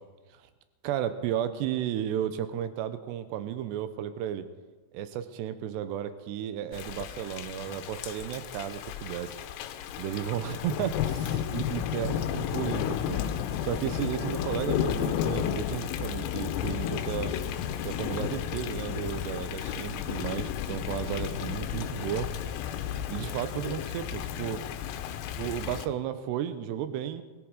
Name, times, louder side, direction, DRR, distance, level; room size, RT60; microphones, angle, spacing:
voice 1, 0.8-4.5 4.9-9.4 10.0-13.2 13.6-17.4 17.8-22.3 23.1-24.6 25.4-27.2, right 10 dB, 80° right, 11 dB, 2.9 m, -33 dB
Thunder / Rain, 6.7-25.9, left 10 dB, 80° left, 3.0 m, -33 dB
20.5 x 13.5 x 4.9 m, 1.3 s
omnidirectional pair, 5.2 m